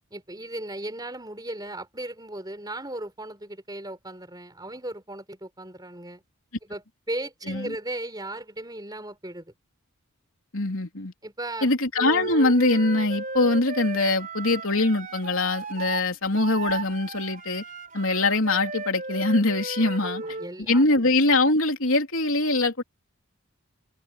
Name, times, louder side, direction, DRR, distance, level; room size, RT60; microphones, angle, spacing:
voice 1, 0.1-6.2 6.6-9.5 11.2-11.7 20.0-20.8, right 1 dB, 15° right, 4.6 m, -36 dB
voice 2, 10.5-11.1 11.6-17.6 17.9-20.2 20.7-22.8, left 2 dB, 65° left, 3.6 m, -23 dB
Wind instrument woodwind instrument, 12.0-20.5, right 3 dB, 35° right, 4.4 m, -35 dB
head